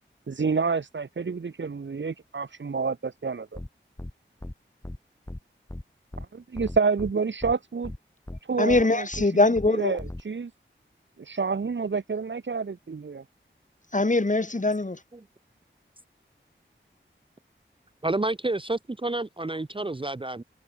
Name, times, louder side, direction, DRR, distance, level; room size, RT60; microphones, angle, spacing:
voice 1, 0.3-3.6 6.3-7.9 8.5-9.1 9.7-10.5 11.2-13.2, right 5 dB, 65° right, 0.8 m, -28 dB
sound 1, 3.6-3.7 4.0-4.1 4.4-4.5 4.8-5.0 5.3-5.4 5.7-5.8 6.1-6.3 6.6-7.1 7.4-7.5 7.8-8.0 8.3-8.4 8.7-8.8 9.1-9.3 9.6-9.7 10.0-10.2, left 1 dB, 15° left, 1.2 m, -37 dB
voice 2, 8.6-10.0 13.9-15.0, left 2 dB, 40° left, 2.4 m, -22 dB
voice 3, 18.0-20.4, right 2 dB, 25° right, 0.7 m, -29 dB
wide cardioid pair, 70°, 21 cm